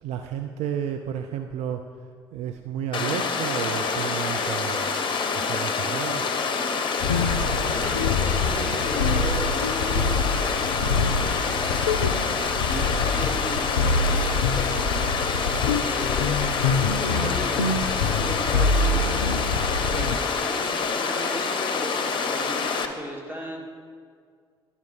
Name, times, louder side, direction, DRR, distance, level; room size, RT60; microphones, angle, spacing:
voice 1, 0.0-1.8 2.3-4.9 5.3-6.2 12.8-12.9, right 9 dB, 55° right, 6 dB, 0.4 m, -31 dB
Water, 2.9-22.9, left 5 dB, 35° left, 0.8 m, -27 dB
sound 1, 7.0-20.2, left 4 dB, 80° left, 0.4 m, -26 dB
voice 2, 7.6-11.8 12.6-15.1 15.8-16.4 16.9-19.4 19.6-23.6, equal, 15° right, -2 dB, 2.0 m, -37 dB
10.5 x 5.6 x 4.6 m, 2.1 s
figure-of-eight pair, 50°, 13 cm